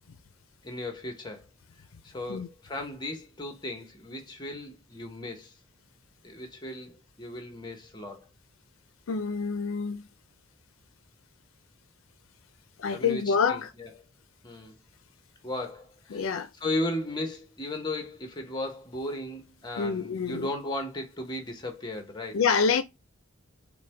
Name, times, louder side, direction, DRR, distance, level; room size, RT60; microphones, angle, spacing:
voice 1, 0.6-1.5 2.0-5.5 6.2-8.3 12.9-13.9 14.4-14.8 15.4-16.3 16.6-22.4, left 1 dB, 20° left, 1.0 m, -36 dB
voice 2, 9.1-10.0 12.8-13.7 16.1-16.5 19.8-20.5 22.3-22.8, left 5 dB, 85° left, 0.5 m, -27 dB
5.8 x 2.2 x 3.4 m
head